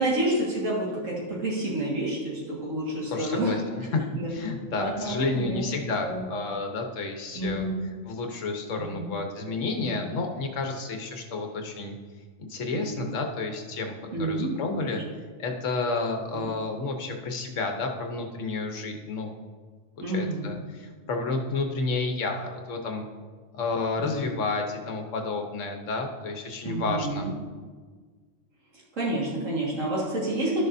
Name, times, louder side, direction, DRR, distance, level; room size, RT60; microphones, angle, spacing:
voice 1, 0.0-4.3 4.8-5.7 6.0-6.3 7.3-7.8 8.8-9.1 9.8-10.0 12.7-13.1 14.1-14.5 14.9-15.0 16.3-16.5 20.0-20.5 24.0-24.4 26.6-27.3 28.9-30.7, right 1 dB, 75° right, -5 dB, 2.2 m, -29 dB
voice 2, 3.1-3.6 3.9-7.6 8.1-12.0 12.4-15.0 15.4-19.4 20.1-23.0 23.5-27.3, left 3 dB, 75° left, 3 dB, 1.3 m, -31 dB
12.5 x 6.6 x 2.7 m, 1.5 s
omnidirectional pair, 1.3 m